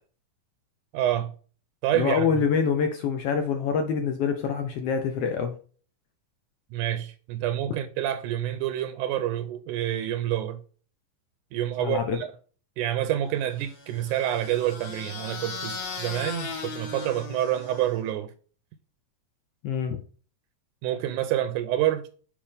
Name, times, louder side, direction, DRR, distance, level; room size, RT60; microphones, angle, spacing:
voice 1, 0.9-1.3 1.8-2.4 6.7-10.6 11.5-12.3 12.8-18.3 20.8-22.0, right 12 dB, 85° right, 2.1 m, -28 dB
voice 2, 1.9-5.5 11.8-12.2 19.6-20.0, left 6 dB, 80° left, 1.3 m, -26 dB
sound 1, 13.6-18.1, left 4 dB, 55° left, 2.4 m, -38 dB
7.1 x 5.0 x 3.4 m
omnidirectional pair, 3.7 m